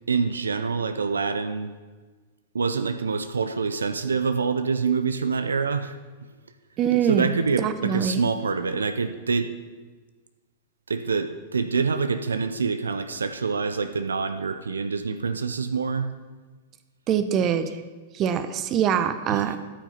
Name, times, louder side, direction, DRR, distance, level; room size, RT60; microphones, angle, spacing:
voice 1, 0.1-1.7 2.5-5.9 7.0-9.5 10.9-16.1 19.3-19.6, right 5 dB, 90° right, 10 dB, 0.6 m, -26 dB
voice 2, 6.8-7.3 7.6-8.2 17.1-17.7 18.1-19.6, right 8 dB, 35° right, 10 dB, 0.8 m, -23 dB
12.5 x 6.0 x 5.7 m, 1.4 s
hypercardioid pair, 105°, 0 cm